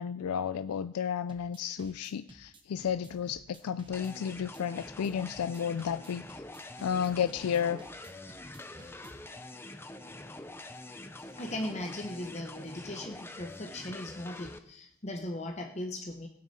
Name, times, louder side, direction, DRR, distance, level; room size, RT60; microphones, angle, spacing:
voice 1, 0.0-6.4 6.8-7.8, left 8 dB, 85° left, 13 dB, 0.4 m, -32 dB
sound 1, 1.3-9.3, right 1 dB, 20° right, 1.0 m, -54 dB
sound 2, 3.9-14.6, left 2 dB, 10° left, 0.5 m, -45 dB
voice 2, 11.2-16.3, left 1 dB, 30° left, 2 dB, 1.0 m, -38 dB
17.5 x 9.5 x 4.3 m, 0.76 s
head